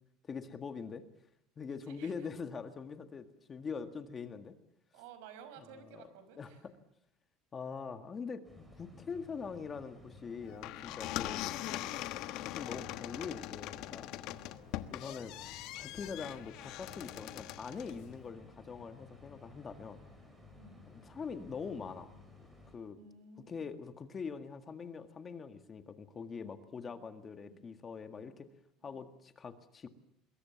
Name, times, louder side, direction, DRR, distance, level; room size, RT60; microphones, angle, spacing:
voice 1, 0.2-1.0 1.6-4.5 5.6-5.9 6.4-6.5 7.5-11.5 11.8-11.9 12.4-14.1 14.9-15.4 15.8-20.0 20.9-22.1 22.7-23.0 23.5-28.5 28.8-29.9, left 5 dB, 20° left, 9 dB, 1.8 m, -43 dB
voice 2, 1.7-2.3 4.9-6.6 14.3-14.5 20.6-20.9 23.0-23.7 26.4-26.6 26.9-27.0 27.4-27.6 28.1-28.4 28.8-29.0, right 6 dB, 80° right, 11 dB, 5.7 m, -55 dB
sound 1, 8.4-22.8, left 2 dB, 5° right, 6.1 m, -56 dB
sound 2, 10.4-18.0, left 15 dB, 55° left, 1.3 m, -41 dB
25.5 x 22.0 x 7.2 m, 0.74 s
cardioid pair, 155°, 0 cm